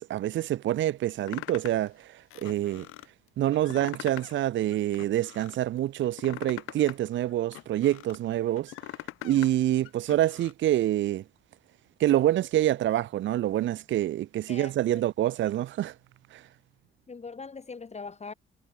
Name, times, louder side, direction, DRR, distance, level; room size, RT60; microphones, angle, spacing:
voice 1, 0.0-2.9 3.4-8.9 9.2-11.2 12.0-15.9 16.3-16.5, right 13 dB, 65° right, 0.6 m, -27 dB
sound 1, 1.3-1.9 2.3-3.1 3.5-4.4 4.7-5.6 6.0-8.2 8.6-9.5 9.8-10.5, left 18 dB, 85° left, 2.5 m, -42 dB
voice 2, 14.5-15.0 17.1-18.3, left 4 dB, 30° left, 1.3 m, -41 dB
supercardioid pair, 55°, 21 cm